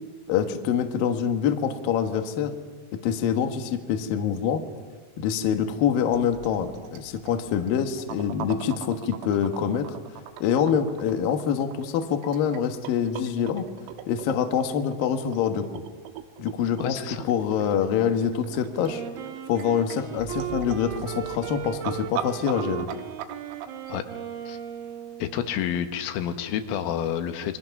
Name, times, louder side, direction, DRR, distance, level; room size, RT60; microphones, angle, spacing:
voice 1, 0.3-2.5 3.0-4.6 5.2-10.0 10.4-13.6 14.1-15.7 16.4-17.0 17.2-19.0 19.5-22.9, left 8 dB, 65° left, 5 dB, 2.5 m, -25 dB
sound 1, 6.1-23.7, right 12 dB, 75° right, 3.5 m, -39 dB
voice 2, 16.8-17.3 23.9-24.0 24.5-24.6 25.2-27.6, left 9 dB, 80° left, 7 dB, 3.7 m, -29 dB
Wind instrument woodwind instrument, 18.7-25.5, right 8 dB, 55° right, 3.0 m, -36 dB
27.5 x 23.0 x 6.0 m, 1.3 s
omnidirectional pair, 5.9 m